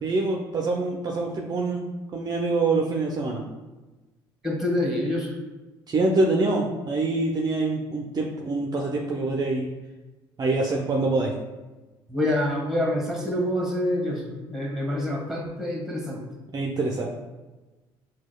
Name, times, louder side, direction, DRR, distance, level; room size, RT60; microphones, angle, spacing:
voice 1, 0.0-3.4 5.9-9.7 10.4-11.3 16.5-17.1, right 3 dB, 35° right, -1 dB, 0.5 m, -25 dB
voice 2, 4.4-5.3 12.1-16.2, left 1 dB, 5° right, -1 dB, 1.4 m, -26 dB
6.0 x 2.3 x 2.2 m, 1.2 s
hypercardioid pair, 55°, 12 cm